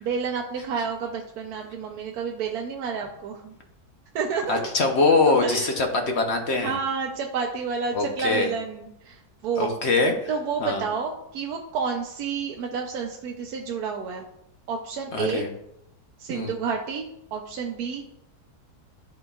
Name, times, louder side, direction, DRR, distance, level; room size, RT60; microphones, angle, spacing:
voice 1, 0.0-3.6 4.1-4.7 5.4-5.9 6.6-9.7 10.3-14.2 14.7-15.4 16.2-18.0, right 6 dB, 75° right, 1 dB, 1.1 m, -30 dB
voice 2, 4.5-6.8 7.9-8.5 9.6-10.1 10.6-10.8 15.1-15.5 16.3-16.5, left 3 dB, 55° left, 3 dB, 0.8 m, -23 dB
11.5 x 4.0 x 2.3 m, 0.80 s
omnidirectional pair, 1.7 m